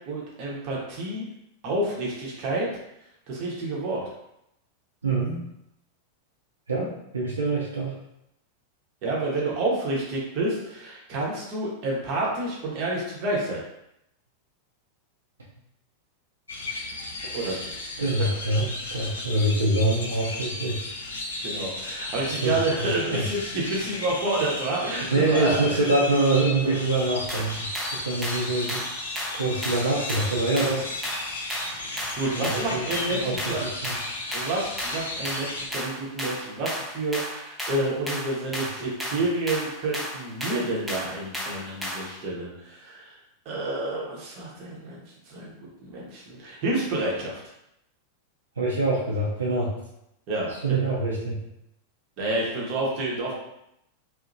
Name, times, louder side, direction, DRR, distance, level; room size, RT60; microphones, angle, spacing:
voice 1, 0.1-1.3 1.6-2.7 3.3-4.0 9.0-13.6 17.3-17.6 21.4-25.9 26.6-26.8 32.1-33.6 34.3-43.1 43.5-45.0 45.3-45.5 45.8-47.4 50.3-50.9 52.2-53.4, right 2 dB, 40° right, -4 dB, 0.8 m, -29 dB
voice 2, 5.0-5.4 6.7-7.9 17.2-17.6 18.0-20.8 22.2-23.2 25.0-27.6 27.8-28.8 29.3-30.8 32.3-34.0 48.6-49.7 50.5-51.4, right 2 dB, 75° right, -6 dB, 0.5 m, -25 dB
sound 1, 16.5-35.7, left 2 dB, 70° left, 0.4 m, -35 dB
sound 2, 27.3-42.2, equal, 5° right, 0.6 m, -34 dB
2.8 x 2.1 x 2.6 m, 0.80 s
figure-of-eight pair, 90°, 0 cm